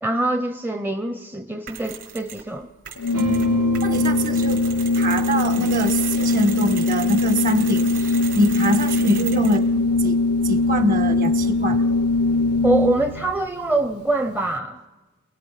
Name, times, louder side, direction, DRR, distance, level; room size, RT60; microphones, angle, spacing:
voice 1, 0.0-2.7 12.6-14.8, right 2 dB, 10° right, 6 dB, 0.6 m, -24 dB
Mechanisms, 1.7-2.5 2.8-9.7, right 8 dB, 60° right, 4.0 m, -36 dB
Organ, 3.0-13.3, left 3 dB, 90° left, 0.6 m, -21 dB
sound 1, 3.1-8.0, right 1 dB, 90° right, 4.1 m, -35 dB
voice 2, 3.8-4.6 4.9-9.7 10.0-10.2 10.4-11.8, equal, 40° right, 11 dB, 1.2 m, -24 dB
27.5 x 19.5 x 5.7 m, 1.2 s
head